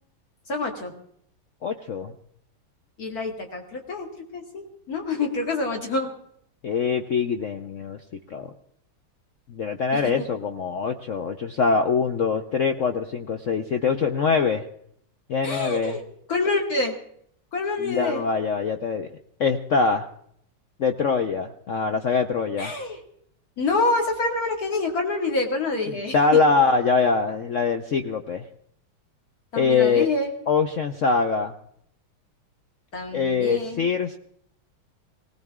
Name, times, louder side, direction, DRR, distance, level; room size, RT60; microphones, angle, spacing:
voice 1, 0.5-0.9 3.0-6.1 9.9-10.2 15.4-16.0 16.3-17.0 17.5-18.2 22.6-23.0 23.6-26.4 29.5-30.3 32.9-33.9, left 3 dB, 45° left, 2 dB, 2.7 m, -27 dB
voice 2, 1.6-2.1 6.6-8.0 8.3-8.5 9.5-14.6 15.3-16.0 17.8-19.1 19.4-20.1 20.8-22.7 26.1-28.5 29.6-30.1 30.5-31.5 33.1-34.2, left 5 dB, 75° left, 7 dB, 0.7 m, -23 dB
20.0 x 18.0 x 3.6 m, 0.68 s
omnidirectional pair, 2.4 m